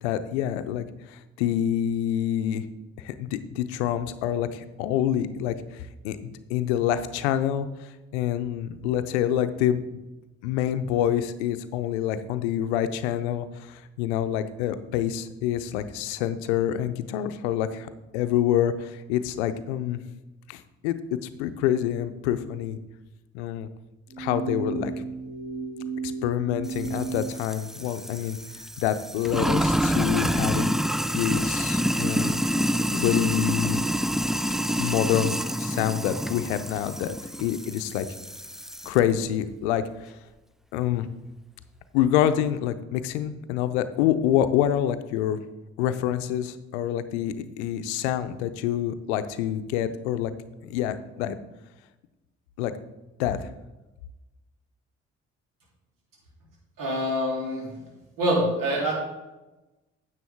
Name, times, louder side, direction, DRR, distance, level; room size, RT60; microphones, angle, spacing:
voice 1, 0.0-2.6 3.0-9.8 10.4-20.0 20.5-22.8 23.3-23.7 24.2-24.9 26.0-28.4 28.8-30.8 31.1-32.4 32.9-33.8 34.8-38.1 38.8-40.2 40.7-41.1 41.9-45.4 45.8-50.3 50.6-51.4 52.6-52.7 53.2-53.5, left 11 dB, 85° left, 11 dB, 0.6 m, -27 dB
sound 1, 24.1-27.3, right 4 dB, 35° right, 1.8 m, -33 dB
Sink (filling or washing), 26.7-39.0, equal, ahead, 0.4 m, -27 dB
voice 2, 56.8-57.6 58.2-58.9, equal, 75° right, -3 dB, 3.3 m, -25 dB
9.7 x 7.5 x 3.6 m, 1.0 s
hypercardioid pair, 45°, 33 cm